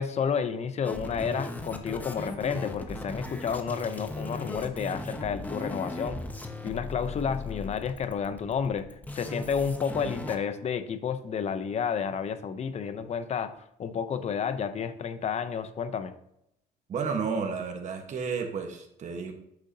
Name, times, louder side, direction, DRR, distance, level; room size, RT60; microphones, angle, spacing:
voice 1, 0.0-6.2 6.6-8.9 9.1-13.5 13.8-16.1, left 6 dB, 40° left, 11 dB, 0.7 m, -31 dB
sound 1, 0.8-10.4, left 2 dB, 10° left, 0.8 m, -37 dB
voice 2, 16.9-19.3, right 5 dB, 45° right, 4 dB, 1.3 m, -32 dB
8.3 x 6.5 x 2.8 m, 0.78 s
cardioid pair, 110°, 17 cm